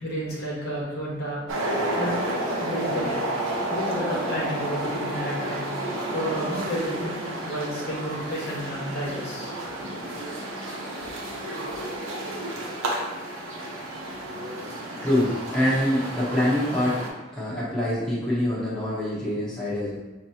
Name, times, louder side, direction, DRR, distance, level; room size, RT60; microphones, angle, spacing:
voice 1, 0.0-1.4 2.0-3.2 3.7-5.7 6.1-9.5, equal, 50° left, -5 dB, 1.2 m, -31 dB
sound 1, 1.5-17.1, right 1 dB, 90° right, 0.9 m, -31 dB
voice 2, 15.0-17.0 17.3-20.0, left 1 dB, 5° left, -10 dB, 1.0 m, -25 dB
6.1 x 2.8 x 2.8 m, 1.1 s
head